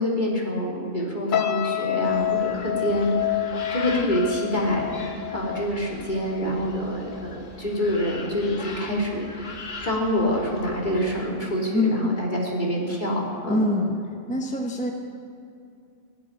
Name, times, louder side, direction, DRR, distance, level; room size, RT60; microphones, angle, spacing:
voice 1, 0.0-4.9 5.3-9.5 9.8-13.7, equal, 40° left, -3 dB, 3.0 m, -26 dB
sound 1, 1.3-6.6 6.9-7.2, left 13 dB, 55° left, 0.6 m, -28 dB
sound 2, 2.0-11.3, left 3 dB, 75° left, 1.8 m, -41 dB
voice 2, 11.7-12.1 13.5-14.0 14.3-14.9, left 2 dB, 5° left, 1 dB, 0.9 m, -24 dB
18.0 x 7.2 x 9.9 m, 2.5 s
omnidirectional pair, 1.2 m